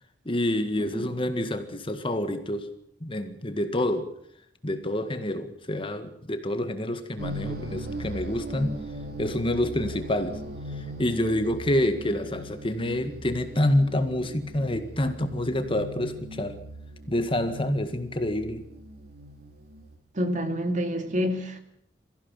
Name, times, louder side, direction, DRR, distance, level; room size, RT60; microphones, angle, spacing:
voice 1, 0.2-2.7 3.0-4.1 4.6-8.8 9.2-10.4 10.8-16.6 17.1-18.6, left 1 dB, 30° left, 1.8 m, -27 dB
sound 1, 7.2-20.0, right 1 dB, 60° right, 3.5 m, -39 dB
voice 2, 20.2-21.6, equal, 45° right, 2.6 m, -27 dB
23.5 x 15.5 x 7.3 m
head